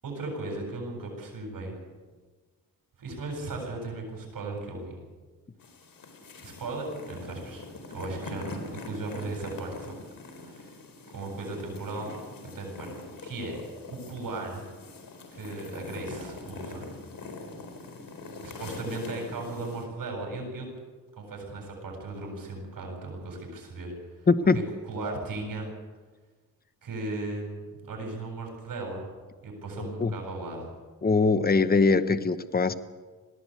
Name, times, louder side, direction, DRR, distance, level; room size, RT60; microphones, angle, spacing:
voice 1, 0.0-1.7 3.0-4.9 6.4-9.9 10.4-10.8 11.1-12.1 12.5-12.9 13.2-13.6 13.9-14.6 15.3-16.9 18.4-20.7 21.2-23.9 24.9-25.7 26.8-29.1 29.4-30.7, right 2 dB, 70° right, 1 dB, 7.8 m, -36 dB
sound 1, 5.6-19.8, left 3 dB, 70° left, 4.1 m, -43 dB
voice 2, 24.3-24.6 29.8-30.1 31.0-32.7, left 4 dB, 25° left, 12 dB, 1.0 m, -22 dB
21.0 x 16.0 x 8.3 m, 1.4 s
cardioid pair, 80°, 34 cm